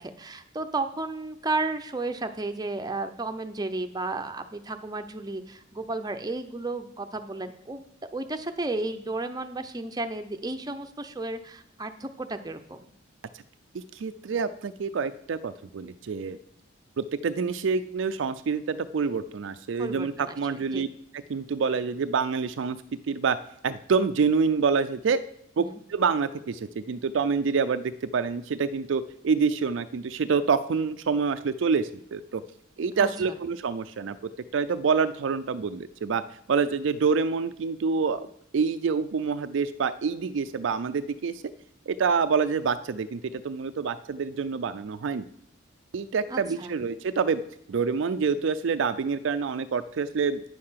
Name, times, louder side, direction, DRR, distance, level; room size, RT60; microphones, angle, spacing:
voice 1, 0.0-7.8 8.1-12.8 19.8-20.4 20.7-20.8 25.6-25.8 33.0-33.1 46.3-46.7, right 2 dB, 20° right, 7 dB, 0.6 m, -33 dB
voice 2, 13.7-16.4 17.0-20.9 21.1-22.8 23.1-23.4 23.6-25.2 25.6-32.4 32.8-34.2 34.5-36.2 36.5-41.5 41.9-45.3 45.9-47.4 47.7-50.4, right 5 dB, 60° right, 11 dB, 0.4 m, -27 dB
9.5 x 6.6 x 5.7 m, 0.69 s
head